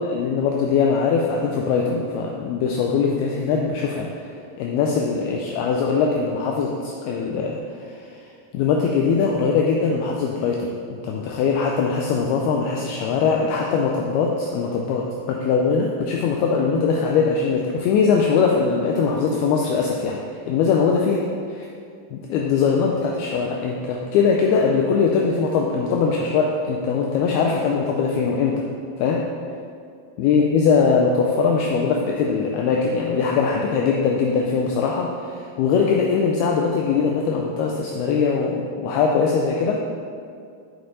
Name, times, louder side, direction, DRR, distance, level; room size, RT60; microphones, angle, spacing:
voice 1, 0.0-4.1 4.6-8.0 8.5-20.2 20.5-21.2 21.5-21.7 22.1-28.7 29.0-29.3 30.2-39.8, left 5 dB, 85° left, 0 dB, 2.2 m, -21 dB
8.5 x 6.9 x 4.0 m, 2.3 s
omnidirectional pair, 5.0 m